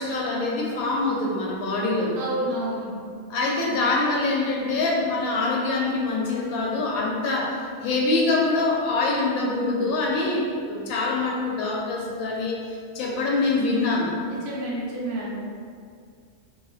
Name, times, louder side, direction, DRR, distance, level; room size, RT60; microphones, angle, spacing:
voice 1, 0.0-2.2 3.3-14.1, left 3 dB, 85° left, -2 dB, 1.0 m, -25 dB
voice 2, 2.2-2.9 14.2-15.3, right 1 dB, 55° right, -5 dB, 0.8 m, -29 dB
3.1 x 2.4 x 2.3 m, 2.2 s
omnidirectional pair, 1.5 m